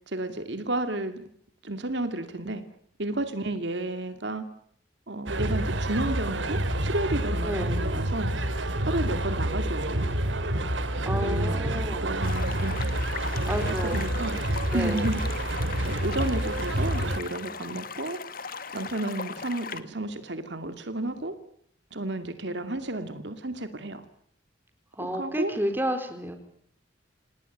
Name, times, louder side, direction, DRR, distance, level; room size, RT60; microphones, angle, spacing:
voice 1, 0.1-1.3 1.6-2.6 3.0-4.5 5.1-8.3 8.9-10.1 11.2-12.8 13.8-14.4 14.7-18.2 18.7-21.4 21.9-24.0 25.1-25.5, right 2 dB, 65° right, 9 dB, 2.5 m, -32 dB
sound 1, 5.3-17.2, right 1 dB, 80° right, 2.6 m, -28 dB
voice 2, 7.4-7.8 11.0-12.1 13.5-14.0 14.7-15.1 25.0-26.4, equal, 10° right, 7 dB, 3.9 m, -31 dB
sound 2, 12.2-19.8, left 5 dB, 50° left, 1.7 m, -38 dB
28.0 x 19.5 x 9.2 m, 0.66 s
head